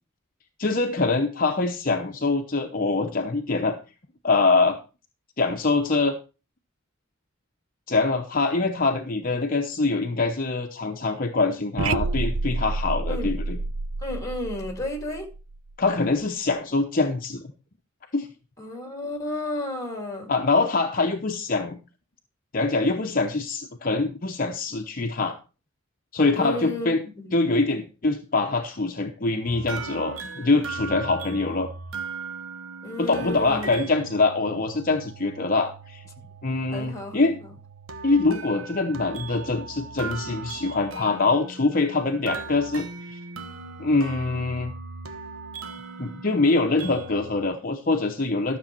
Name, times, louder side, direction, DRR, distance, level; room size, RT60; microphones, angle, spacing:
voice 1, 0.6-3.8 4.2-4.8 5.4-6.2 7.9-13.6 15.8-17.4 18.1-18.3 20.3-21.8 22.5-25.4 26.1-27.1 27.3-31.7 33.0-36.0 36.4-37.4 38.0-43.2 43.8-44.7 46.0-48.6, left 3 dB, 45° left, 0.8 m, -24 dB
sound 1, 11.8-15.9, right 3 dB, 90° right, 0.5 m, -29 dB
voice 2, 14.0-15.3 18.6-20.3 26.3-27.3 31.4-31.5 32.8-33.7 36.7-37.5, left 2 dB, 15° left, 2.2 m, -33 dB
sound 2, 29.5-47.5, right 4 dB, 70° right, 1.2 m, -38 dB
12.5 x 6.9 x 4.4 m
head